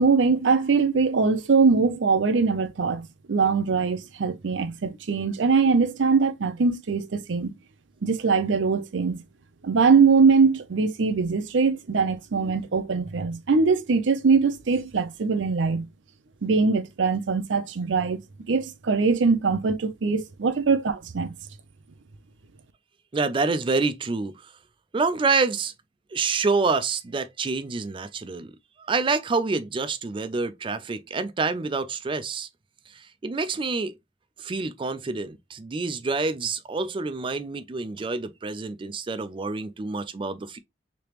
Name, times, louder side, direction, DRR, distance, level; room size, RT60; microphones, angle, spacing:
voice 1, 0.0-7.5 8.0-9.2 9.6-15.9 16.4-18.2 18.5-21.3, right 4 dB, 80° right, 0.6 m, -22 dB
voice 2, 23.1-24.3 24.9-25.7 26.1-28.5 28.9-32.5 33.0-34.0 34.4-40.6, right 4 dB, 25° right, 0.4 m, -27 dB
3.3 x 2.9 x 2.9 m
head